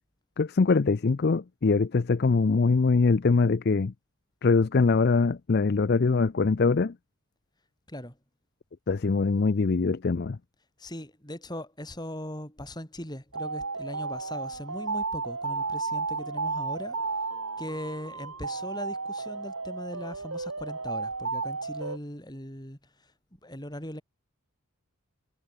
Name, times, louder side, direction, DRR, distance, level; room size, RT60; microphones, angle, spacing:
voice 1, 0.4-3.9 4.4-6.9 8.9-10.4, left 4 dB, 45° left, 0.5 m, -23 dB
voice 2, 10.8-17.0 17.6-24.0, left 1 dB, 20° left, 6.7 m, -40 dB
sound 1, 13.3-22.0, right 4 dB, 75° right, 4.7 m, -33 dB
head